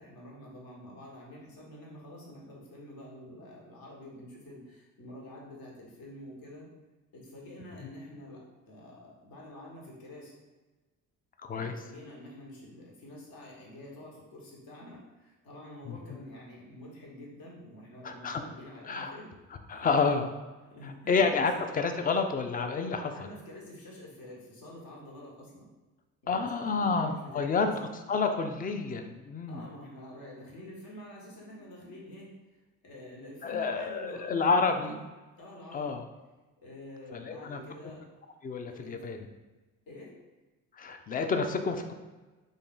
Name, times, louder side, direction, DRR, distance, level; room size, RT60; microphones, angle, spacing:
voice 1, 0.0-6.7 7.1-10.3 11.5-19.3 19.7-20.3 20.7-21.5 23.1-25.7 26.2-27.7 29.5-35.1 35.4-36.0 36.6-38.0 38.7-39.0 39.9-40.1, left 1 dB, 55° left, -3 dB, 1.4 m, -48 dB
voice 2, 11.4-11.7 15.9-16.0 18.0-18.4 18.8-19.1 19.7-20.2 20.8-23.1 26.3-29.7 33.4-34.9 35.7-36.1 37.1-37.6 38.4-39.2 40.8-41.9, left 4 dB, 20° left, 6 dB, 0.3 m, -29 dB
3.7 x 2.5 x 3.7 m, 1.2 s
figure-of-eight pair, 50°, 44 cm